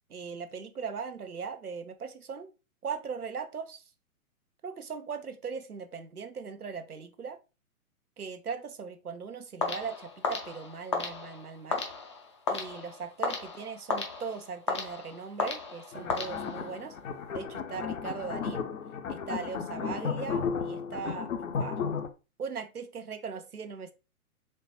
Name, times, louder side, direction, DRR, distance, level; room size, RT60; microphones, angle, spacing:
voice 1, 0.1-2.5 2.8-3.8 4.6-7.4 8.2-11.8 12.5-17.0 17.3-18.7 19.1-21.3 21.6-21.8 22.4-23.9, right 6 dB, 85° right, 0.7 m, -39 dB
sound 1, 9.6-16.9, left 4 dB, 20° left, 0.4 m, -35 dB
sound 2, 15.9-22.1, left 6 dB, 65° left, 0.7 m, -34 dB
4.3 x 3.2 x 3.0 m
figure-of-eight pair, 115°, 43 cm